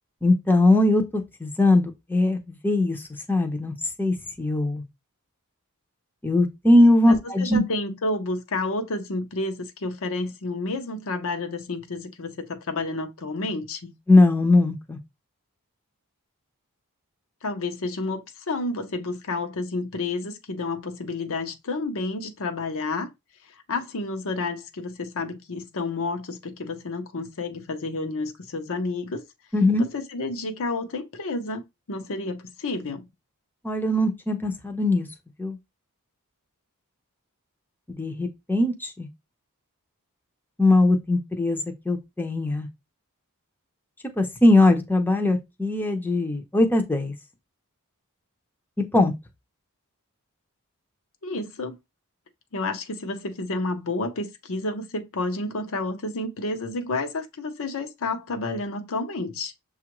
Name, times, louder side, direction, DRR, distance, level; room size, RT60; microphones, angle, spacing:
voice 1, 0.2-3.0 3.3-4.8 6.2-7.6 14.1-15.0 29.5-29.9 33.6-35.1 35.4-35.6 38.0-39.1 40.6-41.6 41.9-42.7 44.2-47.1 48.9-49.1, left 2 dB, 10° left, 0.6 m, -20 dB
voice 2, 7.0-13.9 17.4-23.1 23.4-29.2 29.8-31.6 31.9-33.1 51.2-51.8 52.5-59.5, left 2 dB, 65° left, 0.7 m, -30 dB
6.7 x 2.4 x 2.9 m
head